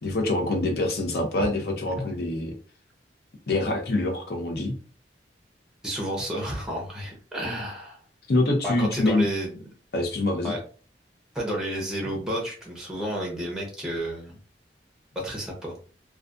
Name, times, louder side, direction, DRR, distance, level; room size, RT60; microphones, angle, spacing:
voice 1, 0.0-2.5 3.5-4.7 8.3-9.2 9.9-10.5, left 2 dB, 60° left, 3 dB, 0.6 m, -25 dB
voice 2, 5.8-8.0 8.6-9.7 10.4-10.6 11.3-14.4 15.2-15.7, equal, 5° right, -1 dB, 0.6 m, -31 dB
2.3 x 2.2 x 2.4 m, 0.38 s
head